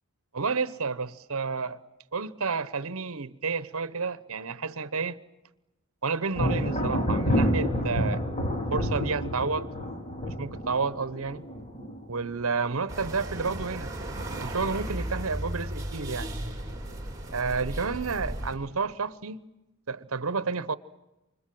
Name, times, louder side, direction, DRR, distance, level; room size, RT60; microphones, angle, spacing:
voice 1, 0.3-1.8 2.1-5.2 6.0-8.2 8.7-9.7 10.3-11.5 12.1-13.9 14.4-16.3 17.3-19.5 19.9-20.8, right 4 dB, 70° right, 1.0 m, -30 dB
Thunder, 6.3-12.8 13.1-13.7 14.2-15.0, equal, 30° left, 2.4 m, -29 dB
sound 1, 12.9-18.5, right 1 dB, 15° right, 3.8 m, -35 dB
29.0 x 25.5 x 7.7 m
head